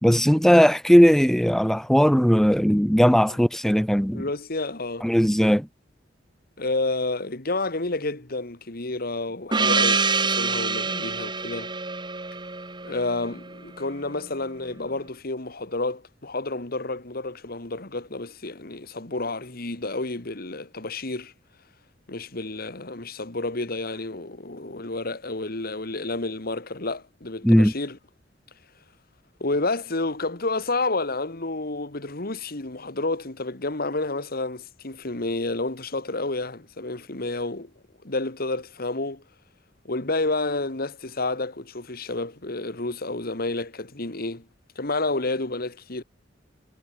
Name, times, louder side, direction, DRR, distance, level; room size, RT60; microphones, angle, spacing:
voice 1, 0.0-4.2 5.0-5.7 27.4-27.7, equal, ahead, 1.2 m, -18 dB
voice 2, 4.1-5.1 6.6-11.7 12.8-21.3 22.1-28.0 29.4-37.7 38.0-39.2 39.8-44.5 44.8-46.0, left 2 dB, 50° left, 2.0 m, -30 dB
Gong, 9.5-13.8, right 4 dB, 25° right, 4.4 m, -26 dB
head